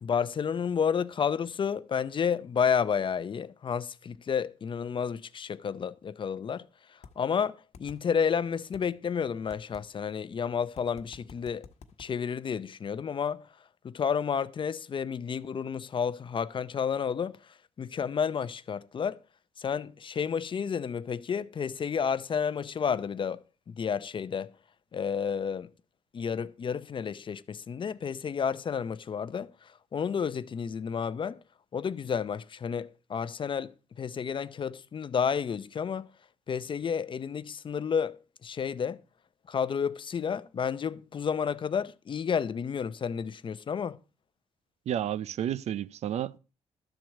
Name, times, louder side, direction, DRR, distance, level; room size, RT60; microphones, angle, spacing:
voice 1, 0.0-6.7 7.2-11.7 12.0-13.5 13.8-17.4 17.8-19.2 19.6-23.4 23.7-24.5 24.9-25.7 26.1-31.4 31.7-33.7 34.0-36.1 36.5-39.0 39.5-44.0, left 7 dB, 45° left, 0.6 m, -31 dB
sound 1, 7.0-7.1 7.7-8.0 8.7-8.8 9.5-9.8 10.8-12.1, left 6 dB, 65° left, 1.1 m, -48 dB
voice 2, 44.9-46.4, right 10 dB, 65° right, 0.4 m, -31 dB
12.0 x 4.5 x 7.3 m
cardioid pair, 75°, 12 cm